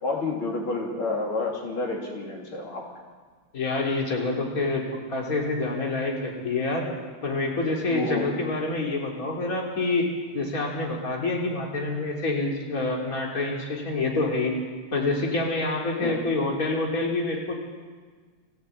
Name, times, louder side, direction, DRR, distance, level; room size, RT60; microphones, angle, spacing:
voice 1, 0.0-2.8 7.9-8.3 16.0-16.2, left 3 dB, 80° left, -1 dB, 3.7 m, -29 dB
voice 2, 3.5-6.9 7.2-10.1 10.3-14.6 14.9-17.5, left 2 dB, 40° left, -1 dB, 3.6 m, -27 dB
20.0 x 15.5 x 8.6 m, 1.5 s
omnidirectional pair, 2.3 m